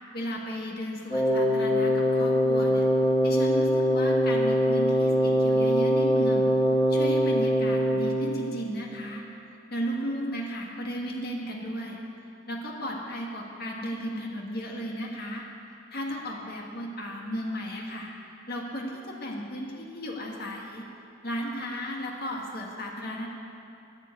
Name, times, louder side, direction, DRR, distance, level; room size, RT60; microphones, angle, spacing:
voice 1, 0.1-2.9 3.2-6.5 6.9-9.2 9.7-12.0 12.5-15.5 15.9-18.1 18.5-20.8 21.2-23.3, equal, 50° left, -1 dB, 1.7 m, -34 dB
Wind instrument woodwind instrument, 1.1-8.4, equal, 15° left, 2.6 m, -23 dB
12.0 x 7.5 x 9.5 m, 2.6 s
head